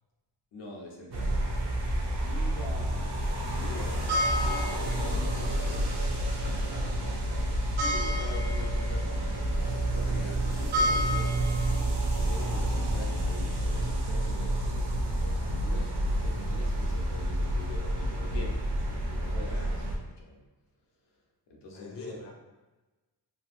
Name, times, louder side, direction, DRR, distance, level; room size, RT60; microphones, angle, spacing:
voice 1, 0.5-1.6 2.2-3.9 4.3-5.6 7.8-9.1 9.9-11.5 11.8-19.7 20.2-20.4 21.0-21.2 21.5-22.2, left 1 dB, 80° left, -2 dB, 0.8 m, -44 dB
sound 1, 1.1-20.0, right 1 dB, 65° right, 0.6 m, -29 dB
voice 2, 3.5-4.2 19.5-19.7 21.7-22.3, left 3 dB, 35° left, -1 dB, 0.5 m, -43 dB
2.8 x 2.7 x 2.5 m, 1.1 s
wide cardioid pair, 120°, 42 cm